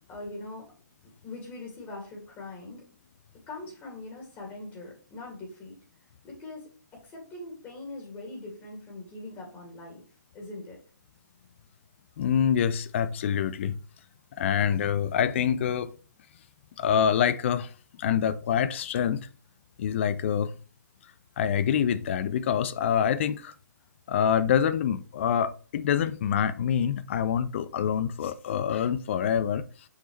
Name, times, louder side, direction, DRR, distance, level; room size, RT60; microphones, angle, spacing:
voice 1, 0.1-0.7 1.0-2.8 3.5-5.8 6.2-10.0 10.3-10.8, left 2 dB, 20° left, 2.3 m, -42 dB
voice 2, 12.2-13.8 14.4-15.9 16.8-17.7 18.0-19.2 19.8-20.6 21.4-23.5 24.1-29.7, left 8 dB, 40° left, 0.6 m, -26 dB
6.6 x 5.5 x 3.2 m
figure-of-eight pair, 135°, 10 cm